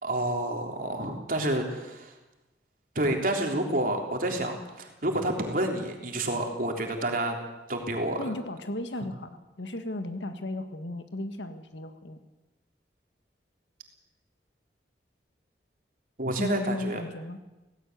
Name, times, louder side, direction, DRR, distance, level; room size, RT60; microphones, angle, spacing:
voice 1, 0.0-2.1 3.0-7.4 7.7-8.3 16.2-17.0, right 1 dB, 50° right, 2 dB, 3.4 m, -29 dB
voice 2, 8.2-12.2 16.4-17.4, left 1 dB, 90° left, 8 dB, 1.7 m, -35 dB
17.5 x 16.5 x 9.3 m, 1.0 s
head